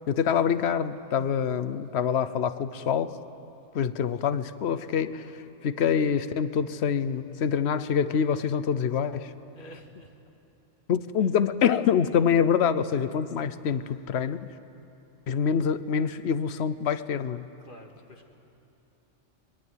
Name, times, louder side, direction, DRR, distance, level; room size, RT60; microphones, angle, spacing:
voice 1, 0.1-3.1 3.7-9.3 10.9-14.5 15.3-17.4, left 7 dB, 60° left, 14 dB, 1.1 m, -26 dB
voice 2, 9.5-10.1 13.9-14.0 17.6-18.4, equal, 40° left, 2 dB, 2.3 m, -49 dB
23.0 x 22.0 x 9.3 m, 2.9 s
omnidirectional pair, 1.3 m